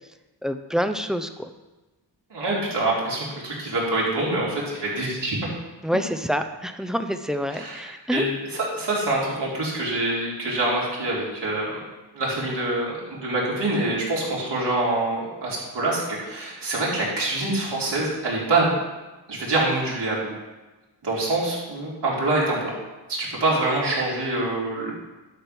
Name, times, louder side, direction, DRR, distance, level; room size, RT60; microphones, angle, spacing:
voice 1, 0.4-1.5 5.8-8.3, equal, ahead, 8 dB, 0.7 m, -27 dB
voice 2, 2.3-5.4 7.5-7.8 8.1-11.8 12.1-18.7 19.3-20.4 21.0-22.7 23.1-24.9, right 2 dB, 70° right, -6 dB, 4.1 m, -25 dB
11.5 x 5.3 x 6.0 m, 1.1 s
cardioid pair, 80°, 42 cm